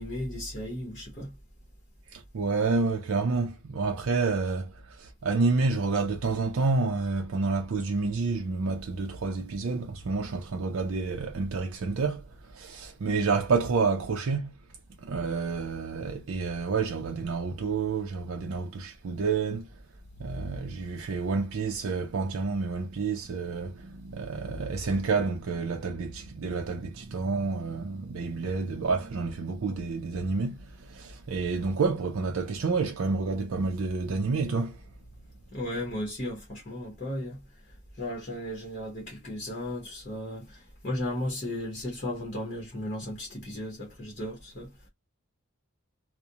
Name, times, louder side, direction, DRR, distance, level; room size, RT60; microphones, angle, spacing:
voice 1, 0.0-1.3 35.5-37.4 38.0-44.7, left 1 dB, 35° left, 0.8 m, -35 dB
voice 2, 2.1-14.5 15.0-19.6 20.2-30.5 30.8-34.8, right 4 dB, 65° right, 0.4 m, -29 dB
2.4 x 2.0 x 2.7 m
head